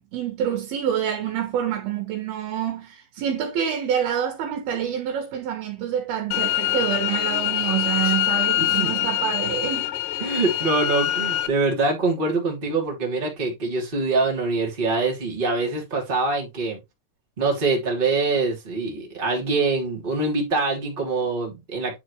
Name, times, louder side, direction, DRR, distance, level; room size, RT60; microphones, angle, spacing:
voice 1, 0.0-9.9, right 9 dB, 70° right, 3.4 m, -27 dB
sound 1, 6.3-11.5, left 14 dB, 85° left, 2.8 m, -24 dB
voice 2, 8.6-8.9 10.2-16.8 17.4-22.0, right 3 dB, 15° right, 2.4 m, -24 dB
10.5 x 4.6 x 3.1 m
omnidirectional pair, 4.6 m